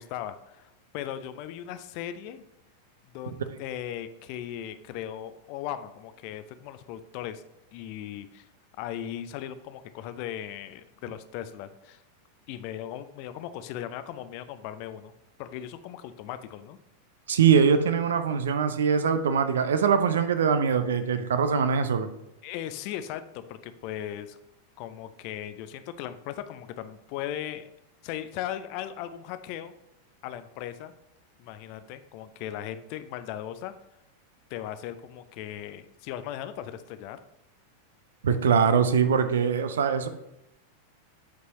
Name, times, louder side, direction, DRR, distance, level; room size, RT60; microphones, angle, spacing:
voice 1, 0.0-2.4 3.1-7.4 7.7-8.5 8.8-12.0 12.5-15.1 15.4-16.8 22.4-24.4 24.8-27.7 28.0-29.7 30.2-30.9 31.4-33.7 34.5-37.2, left 11 dB, 45° left, 11 dB, 0.5 m, -38 dB
voice 2, 17.3-22.1 38.2-40.1, right 6 dB, 65° right, 9 dB, 0.6 m, -22 dB
8.2 x 4.6 x 3.0 m, 0.89 s
figure-of-eight pair, 90°, 0 cm